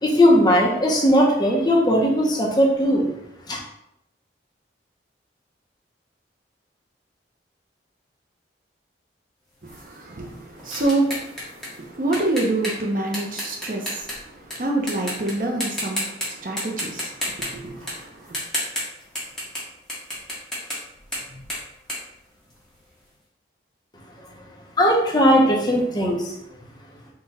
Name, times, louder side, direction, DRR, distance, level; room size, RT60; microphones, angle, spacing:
voice 1, 0.0-3.0 3.5-3.6 24.8-26.3, equal, 25° left, -2 dB, 0.6 m, -18 dB
voice 2, 9.6-18.4, right 2 dB, 50° right, 1 dB, 0.6 m, -27 dB
sound 1, 9.7-14.5 14.9-15.3 15.6-16.3 16.6-19.6 19.9-22.9, equal, 5° left, 1.0 m, -32 dB
3.8 x 2.2 x 4.0 m, 0.81 s
head